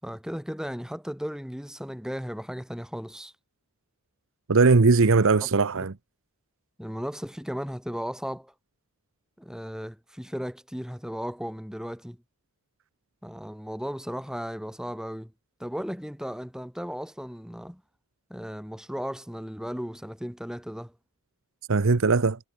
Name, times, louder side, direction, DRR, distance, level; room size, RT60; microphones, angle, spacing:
voice 1, 0.0-3.3 5.4-5.5 6.8-8.5 9.4-12.2 13.2-15.3 15.6-17.8 18.3-20.9, equal, 5° right, 4.4 m, -35 dB
voice 2, 4.5-5.9 21.7-22.4, right 4 dB, 60° right, 0.8 m, -19 dB
head